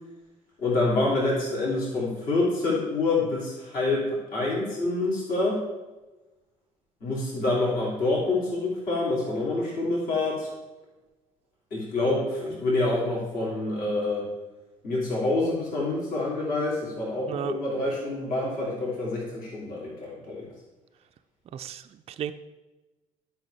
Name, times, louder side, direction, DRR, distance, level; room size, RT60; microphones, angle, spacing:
voice 1, 0.6-5.6 7.0-10.5 11.7-14.2 14.8-20.5, left 2 dB, 55° left, -5 dB, 3.2 m, -27 dB
voice 2, 21.5-22.3, right 10 dB, 35° right, 10 dB, 0.4 m, -35 dB
11.5 x 6.0 x 3.4 m, 1.1 s
figure-of-eight pair, 55°, 17 cm